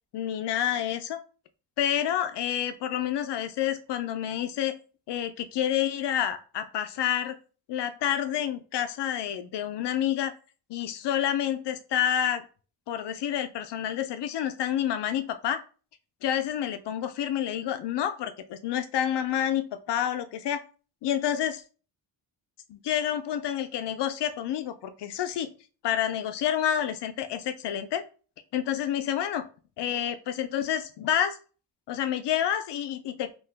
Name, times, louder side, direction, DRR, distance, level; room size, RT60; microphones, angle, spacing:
voice 1, 0.1-1.2 1.8-4.8 5.1-7.4 7.7-10.3 10.7-12.4 12.9-15.6 16.2-20.6 21.0-21.6 22.7-25.5 25.8-28.0 28.5-29.4 29.8-31.4 31.9-33.3, left 10 dB, 60° left, 10 dB, 0.5 m, -28 dB
2.8 x 2.3 x 3.4 m, 0.37 s
cardioid pair, 110°, 47 cm